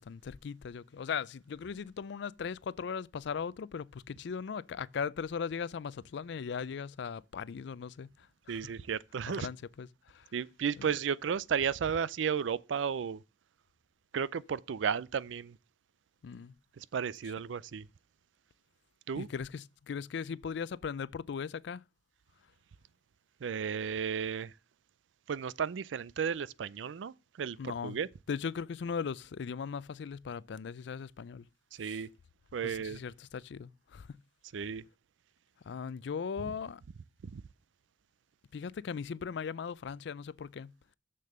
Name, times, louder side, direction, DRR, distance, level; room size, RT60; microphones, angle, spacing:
voice 1, 0.0-8.6 9.4-10.3 16.2-16.5 19.2-21.8 27.6-28.0 28.3-31.5 31.8-32.0 32.6-34.2 35.6-36.8 38.5-40.7, left 6 dB, 65° left, 0.4 m, -38 dB
voice 2, 8.5-9.5 10.3-13.2 14.1-15.6 16.8-17.9 19.1-19.3 23.4-24.5 25.3-28.1 31.7-32.1 32.5-33.0 34.5-34.8 36.4-36.5 37.2-37.4, right 7 dB, 85° right, 0.4 m, -34 dB
6.8 x 6.6 x 6.6 m
head